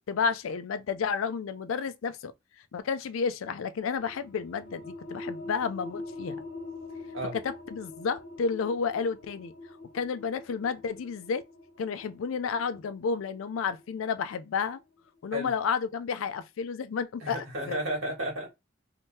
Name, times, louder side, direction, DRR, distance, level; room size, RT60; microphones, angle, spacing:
voice 1, 0.1-2.3 2.7-6.4 7.3-9.5 9.9-11.4 11.8-14.8 15.2-17.8, left 5 dB, 80° left, 0.4 m, -31 dB
sound 1, 4.0-15.2, left 2 dB, 65° left, 0.8 m, -44 dB
voice 2, 17.2-18.5, equal, 80° right, 1.7 m, -32 dB
3.6 x 2.7 x 2.6 m
head